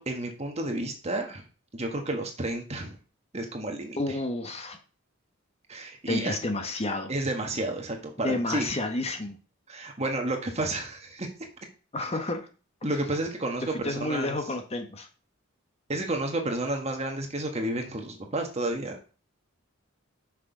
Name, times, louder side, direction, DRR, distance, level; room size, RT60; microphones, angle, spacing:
voice 1, 0.0-1.4 1.7-3.0 3.3-4.0 5.7-6.4 7.1-8.7 9.7-11.3 12.8-14.4 15.9-19.0, right 2 dB, 30° right, 3 dB, 1.4 m, -31 dB
voice 2, 4.0-4.8 6.1-7.1 8.2-9.4 11.9-12.5 13.7-15.1, left 2 dB, 30° left, 5 dB, 1.0 m, -30 dB
6.3 x 6.1 x 5.0 m, 0.36 s
head